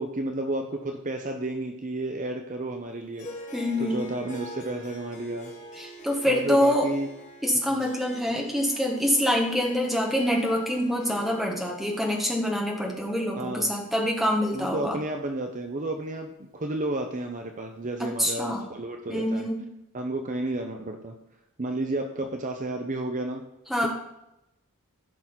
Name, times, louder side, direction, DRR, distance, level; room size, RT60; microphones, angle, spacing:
voice 1, 0.0-3.3 3.8-5.5 6.2-7.1 7.7-7.9 8.3-8.4 13.4-13.7 14.5-19.5 19.9-21.1 21.6-23.4, right 2 dB, 35° right, 4 dB, 0.8 m, -32 dB
Harp, 3.1-15.7, equal, 35° left, 2.1 m, -46 dB
voice 2, 3.5-4.0 5.8-6.9 7.4-15.0 18.0-18.6 19.1-19.6 23.7-23.9, equal, ahead, -1 dB, 1.8 m, -25 dB
15.5 x 6.1 x 4.1 m, 0.88 s
head